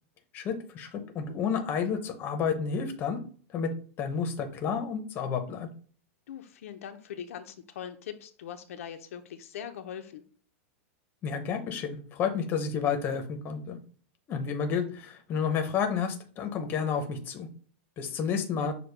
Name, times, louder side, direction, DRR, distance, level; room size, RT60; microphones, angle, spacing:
voice 1, 0.3-3.2 3.5-5.7 11.2-13.8 14.3-17.5 18.0-18.7, left 6 dB, 30° left, 6 dB, 0.7 m, -30 dB
voice 2, 6.3-10.2, left 9 dB, 85° left, 7 dB, 0.6 m, -41 dB
6.3 x 2.2 x 3.3 m, 0.43 s
supercardioid pair, 150°, 7 cm